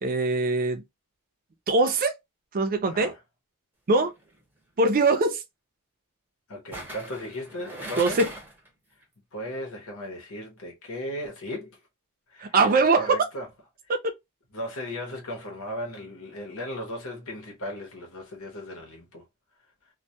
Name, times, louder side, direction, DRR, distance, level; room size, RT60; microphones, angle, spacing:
voice 1, 0.0-0.8 1.7-2.1 2.5-3.1 3.9-4.1 4.8-5.4 8.0-8.3 12.4-13.2, right 3 dB, 40° right, 0.5 m, -22 dB
voice 2, 2.9-3.2 6.5-8.2 9.3-11.8 12.3-13.5 14.5-19.2, equal, 65° left, 0.8 m, -36 dB
sound 1, 4.1-4.4 6.7-8.7 9.0-9.1, right 1 dB, 10° right, 0.7 m, -39 dB
2.2 x 2.2 x 2.7 m
head